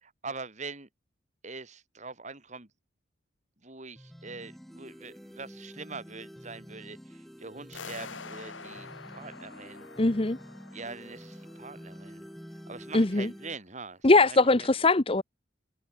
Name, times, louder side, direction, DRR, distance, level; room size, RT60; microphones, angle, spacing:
voice 1, 0.0-0.9 1.4-2.7 3.6-9.9 10.7-12.2 12.7-14.7, right 4 dB, 35° right, 3.3 m, -43 dB
sound 1, 4.0-13.6, equal, ahead, 4.4 m, -48 dB
sound 2, 7.7-12.7, left 5 dB, 75° left, 3.7 m, -47 dB
voice 2, 10.0-10.4 12.9-13.3 14.0-15.2, left 2 dB, 30° left, 0.9 m, -21 dB
head